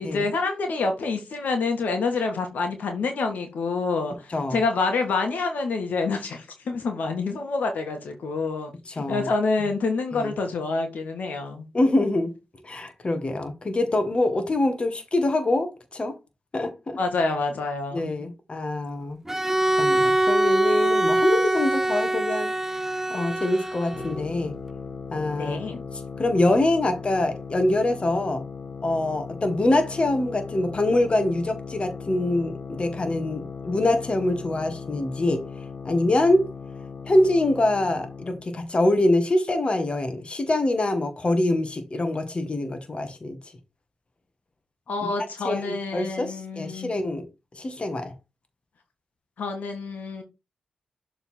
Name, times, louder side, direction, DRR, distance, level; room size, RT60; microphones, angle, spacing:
voice 1, 0.0-11.7 17.0-18.2 25.4-25.8 44.9-47.0 49.4-50.2, left 3 dB, 75° left, 1.7 m, -27 dB
voice 2, 9.0-9.3 10.1-10.3 11.7-12.3 12.6-16.1 16.5-17.0 17.9-19.2 19.8-22.5 23.1-24.5 25.1-25.6 26.2-28.4 28.8-35.4 35.8-36.5 37.1-43.4 45.4-47.3 47.6-48.1, left 1 dB, 40° left, 1.7 m, -24 dB
Bowed string instrument, 19.3-24.3, right 1 dB, 15° right, 0.5 m, -23 dB
sound 1, 23.9-38.5, left 5 dB, 55° left, 0.9 m, -38 dB
6.8 x 3.9 x 4.5 m
supercardioid pair, 50°, 3 cm